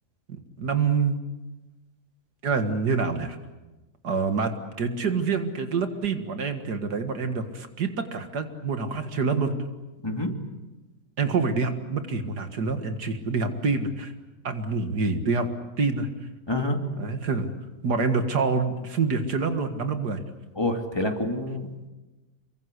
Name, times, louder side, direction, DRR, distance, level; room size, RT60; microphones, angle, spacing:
voice 1, 0.6-1.2 2.4-3.4 4.0-4.5 4.8-9.5 11.2-14.1 14.4-15.5 15.8-16.1 17.0-17.5 17.8-20.2, right 4 dB, 80° right, 7 dB, 2.4 m, -26 dB
voice 2, 16.5-16.8 20.6-21.9, left 1 dB, 15° left, 3 dB, 2.7 m, -27 dB
27.0 x 23.5 x 8.3 m, 1.1 s
omnidirectional pair, 1.7 m